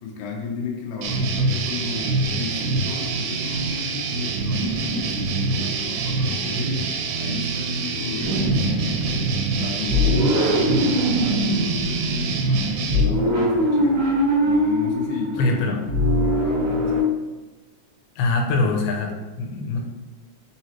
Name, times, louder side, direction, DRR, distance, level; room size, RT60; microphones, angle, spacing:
voice 1, 0.0-6.9 7.2-14.1 14.4-15.6 16.1-17.1, left 5 dB, 75° left, -1 dB, 1.7 m, -33 dB
sound 1, 1.0-13.0, right 4 dB, 85° right, 2.1 m, -25 dB
sound 2, 8.2-17.0, equal, 55° right, 1.4 m, -22 dB
voice 2, 15.4-15.8 18.2-19.8, left 3 dB, 90° left, 1 dB, 2.2 m, -23 dB
4.9 x 3.0 x 2.9 m, 1.2 s
omnidirectional pair, 3.7 m